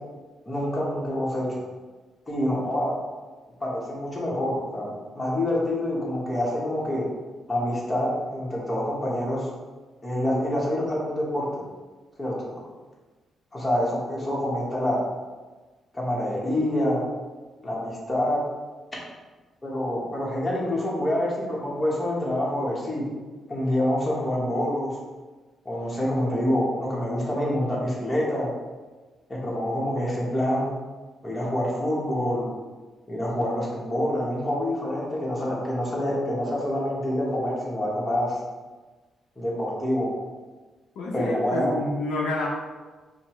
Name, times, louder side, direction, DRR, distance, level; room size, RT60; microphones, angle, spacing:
voice 1, 0.5-1.6 2.3-2.9 3.6-7.1 7.5-9.5 10.0-11.6 12.2-12.6 13.5-15.0 15.9-17.0 17.6-18.4 19.6-23.1 23.5-25.0 25.6-28.5 29.3-30.7 31.2-32.5 33.1-38.4 39.4-40.1 41.1-41.7, left 1 dB, 15° left, -5 dB, 1.0 m, -26 dB
voice 2, 41.0-42.5, left 2 dB, 85° left, -2 dB, 0.6 m, -29 dB
5.2 x 2.1 x 3.0 m, 1.3 s
cardioid pair, 125°, 0 cm